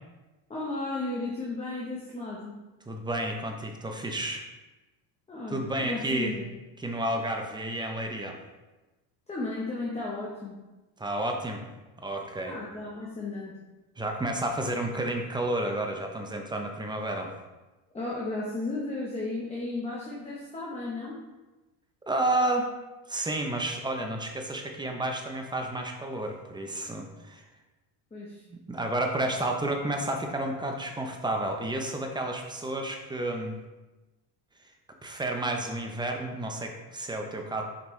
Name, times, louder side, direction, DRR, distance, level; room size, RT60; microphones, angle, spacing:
voice 1, 0.5-2.6 5.3-6.5 9.3-10.6 12.4-13.6 17.9-21.2 28.1-28.4, left 2 dB, 15° left, -4 dB, 0.9 m, -34 dB
voice 2, 2.9-4.5 5.5-6.3 6.8-8.4 11.0-11.7 12.0-12.6 14.0-17.3 22.1-22.7 23.1-27.4 28.5-33.6 35.0-37.6, right 1 dB, 10° right, 3 dB, 0.5 m, -31 dB
6.0 x 5.2 x 3.2 m, 1.1 s
cardioid pair, 130°, 50 cm